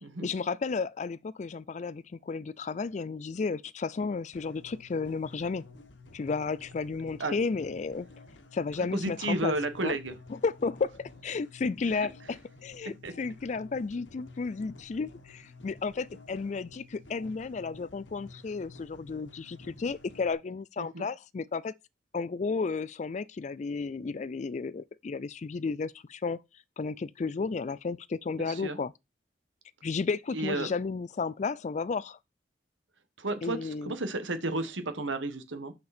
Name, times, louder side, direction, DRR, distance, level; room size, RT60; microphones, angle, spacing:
voice 1, 0.2-5.6 6.1-8.1 8.5-9.5 9.8-10.0 10.3-21.7 22.1-26.4 26.8-28.9 29.8-32.2 33.4-34.0, left 4 dB, 40° left, 0.3 m, -33 dB
sound 1, 4.3-20.3, left 2 dB, 80° left, 1.3 m, -52 dB
voice 2, 8.9-10.2 13.0-13.1 20.8-21.0 28.5-28.8 30.3-30.7 33.2-35.7, right 2 dB, 85° right, 1.4 m, -32 dB
6.8 x 6.6 x 4.3 m
head